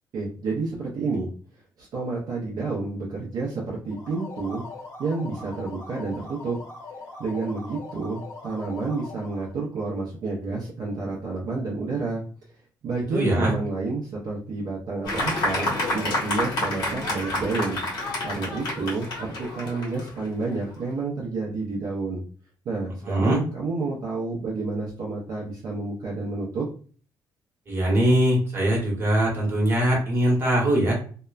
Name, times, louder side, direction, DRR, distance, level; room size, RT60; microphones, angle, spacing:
voice 1, 0.1-1.3 1.8-4.6 5.0-6.6 7.2-12.2 12.8-17.8 18.2-22.2 22.6-26.7, right 3 dB, 55° right, -5 dB, 0.6 m, -30 dB
sound 1, 3.8-9.5, left 3 dB, 40° left, 0.9 m, -41 dB
voice 2, 13.1-13.5 23.0-23.4 27.7-30.9, right 1 dB, 30° right, -3 dB, 1.1 m, -22 dB
Fireworks, 15.0-20.8, left 1 dB, 80° left, 1.3 m, -29 dB
2.8 x 2.1 x 2.3 m, 0.42 s
cardioid pair, 165°, 8 cm